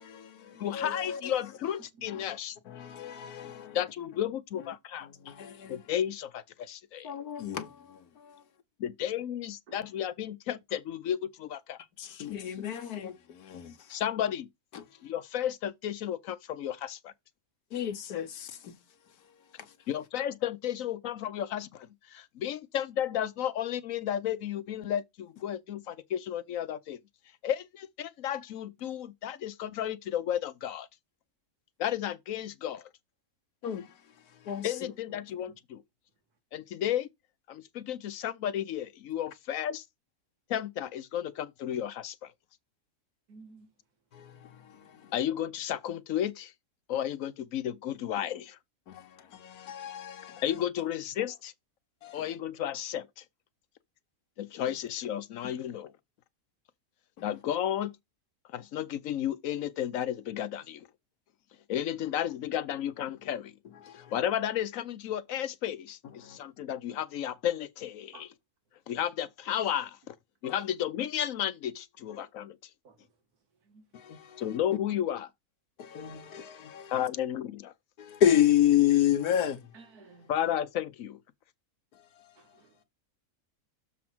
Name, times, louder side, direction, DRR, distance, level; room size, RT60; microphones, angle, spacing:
voice 1, 0.0-1.4 2.1-2.4 2.6-3.8 5.0-5.8 7.0-8.4 12.0-14.0 14.7-14.8 17.7-18.8 19.6-19.7 33.6-34.0 34.3-34.9 44.1-45.1 48.9-50.4 52.0-52.2 57.2-57.3 63.8-64.1 66.2-66.4 70.4-70.6 72.1-72.2 73.9-74.4 75.8-76.9 78.0-79.7 81.9-82.3, left 10 dB, 85° left, 1.5 m, -31 dB
voice 2, 0.6-2.6 3.7-5.1 5.7-7.1 8.8-11.8 13.9-14.5 15.0-17.0 19.9-27.0 27.4-30.9 31.8-32.9 34.6-35.8 36.5-37.1 37.5-39.8 40.5-42.3 45.1-46.5 46.9-48.6 50.4-51.5 52.1-53.2 54.4-55.9 57.2-57.9 58.5-60.9 61.7-63.5 63.9-68.3 68.9-70.1 70.4-72.6 74.4-75.3 76.9-77.7 80.3-81.2, left 10 dB, 65° left, 1.0 m, -33 dB
voice 3, 43.3-43.7 68.1-68.3 72.8-73.0 73.7-73.9 79.7-80.3 82.4-82.8, right 4 dB, 85° right, 1.9 m, -53 dB
6.9 x 3.6 x 6.0 m
omnidirectional pair, 1.6 m